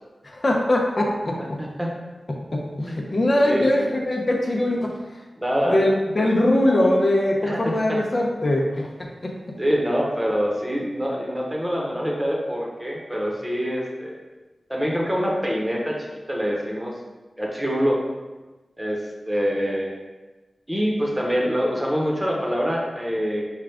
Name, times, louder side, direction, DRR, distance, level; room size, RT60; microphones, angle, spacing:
voice 1, 0.2-1.4 2.5-4.9 5.7-9.3, left 1 dB, 45° left, 0 dB, 0.8 m, -21 dB
voice 2, 1.4-1.9 3.4-3.7 5.4-5.8 7.4-8.0 9.6-14.2 14.7-17.0 17.4-18.0 18.8-19.0 19.3-19.9 20.7-23.5, equal, 15° right, -2 dB, 1.1 m, -25 dB
5.6 x 2.5 x 3.5 m, 1.2 s
cardioid pair, 45°, 0 cm